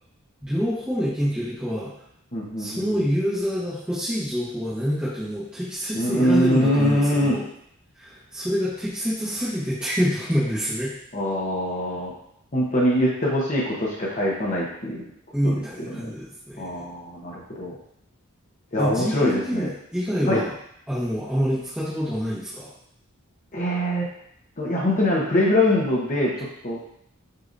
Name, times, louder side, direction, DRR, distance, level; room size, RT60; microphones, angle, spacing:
voice 1, 0.4-1.9 2.6-7.4 8.0-10.9 15.3-16.7 18.8-20.5 20.9-22.7, equal, 5° right, -12 dB, 1.1 m, -26 dB
voice 2, 2.3-3.0 5.9-7.4 11.1-12.1 12.5-15.1 15.4-16.1 16.6-17.8 18.7-19.7 20.3-20.4 23.5-24.0 24.6-26.8, left 1 dB, 35° left, -4 dB, 1.0 m, -23 dB
6.6 x 2.9 x 2.6 m, 0.71 s
head